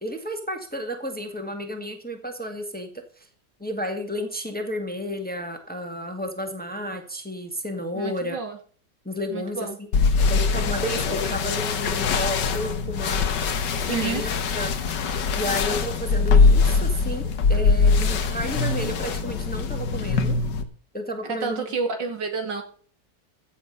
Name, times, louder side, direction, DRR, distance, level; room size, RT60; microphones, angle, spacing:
voice 1, 0.0-2.9 3.2-3.3 3.6-8.4 9.0-9.9 10.3-13.3 13.9-14.7 15.3-20.4 20.9-21.7, equal, 5° left, 5 dB, 1.7 m, -32 dB
voice 2, 7.9-8.6 9.3-9.8 13.9-14.2 21.2-22.6, right 5 dB, 85° right, 5 dB, 2.9 m, -30 dB
sound 1, 9.9-20.6, left 4 dB, 80° left, 1.8 m, -22 dB
15.5 x 7.3 x 5.4 m, 0.43 s
omnidirectional pair, 1.9 m